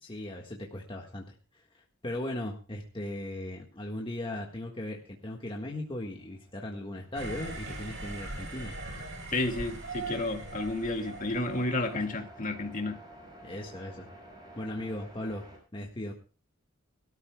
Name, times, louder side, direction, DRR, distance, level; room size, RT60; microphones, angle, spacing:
voice 1, 0.0-8.7 13.4-14.1 14.6-15.5 15.7-16.1, left 1 dB, 25° left, 0 dB, 1.6 m, -38 dB
sound 1, 5.4-15.6, right 1 dB, 20° right, 5.9 m, -53 dB
sound 2, 7.1-11.9, right 2 dB, 65° right, 4.6 m, -40 dB
voice 2, 9.3-13.0, left 2 dB, 40° left, 4 dB, 2.1 m, -31 dB
23.5 x 13.0 x 2.3 m, 0.36 s
head